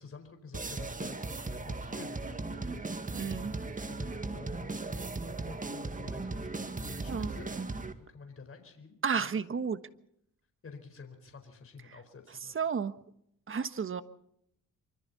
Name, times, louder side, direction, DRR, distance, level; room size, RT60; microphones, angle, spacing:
voice 1, 0.0-2.7 3.2-3.6 3.9-7.5 8.1-9.4 10.6-12.5, left 4 dB, 45° left, 5 dB, 4.5 m, -50 dB
sound 1, 0.5-7.9, right 3 dB, 25° right, 1.9 m, -37 dB
voice 2, 3.1-3.5 7.1-7.3 9.0-9.8 12.5-12.9 13.5-14.0, right 6 dB, 40° right, 12 dB, 1.4 m, -32 dB
25.5 x 25.5 x 4.2 m, 0.73 s
cardioid pair, 105°, 32 cm